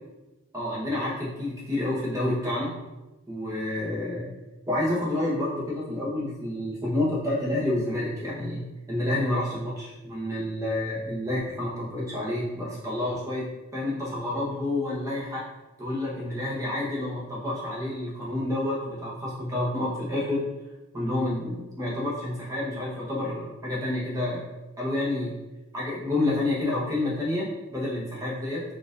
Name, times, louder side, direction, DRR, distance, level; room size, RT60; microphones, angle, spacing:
voice 1, 0.5-2.7 3.3-4.3 4.7-13.5 13.7-15.4 15.8-20.4 20.9-24.4 24.8-25.4 25.7-28.6, left 1 dB, 15° right, -5 dB, 0.7 m, -29 dB
4.0 x 2.5 x 2.5 m, 1.1 s
head